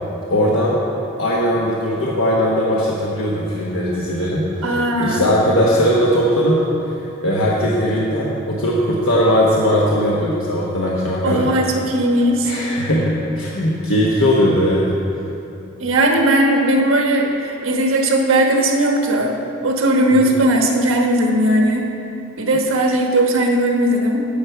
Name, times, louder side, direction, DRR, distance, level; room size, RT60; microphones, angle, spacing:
voice 1, 0.3-0.8 1.2-4.5 5.0-6.6 7.2-11.5 12.4-14.9 20.1-20.3, equal, 80° left, -5 dB, 1.1 m, -18 dB
voice 2, 4.6-5.3 11.2-12.5 15.8-19.4 19.6-21.9 22.4-24.2, right 1 dB, 85° right, 2 dB, 1.2 m, -17 dB
10.5 x 4.8 x 8.0 m, 2.9 s
head